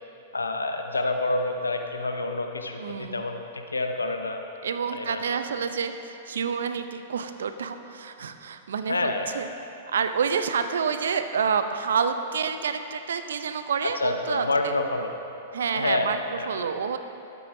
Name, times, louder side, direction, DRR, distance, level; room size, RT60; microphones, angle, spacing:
voice 1, 0.3-4.4 4.9-5.2 8.9-9.3 14.0-15.1 15.7-16.5, left 2 dB, 90° left, 5 dB, 0.7 m, -28 dB
voice 2, 2.8-3.2 4.6-14.8 15.5-17.0, right 6 dB, 70° right, 9 dB, 0.5 m, -28 dB
12.5 x 8.4 x 2.7 m, 2.9 s
figure-of-eight pair, 105°, 0 cm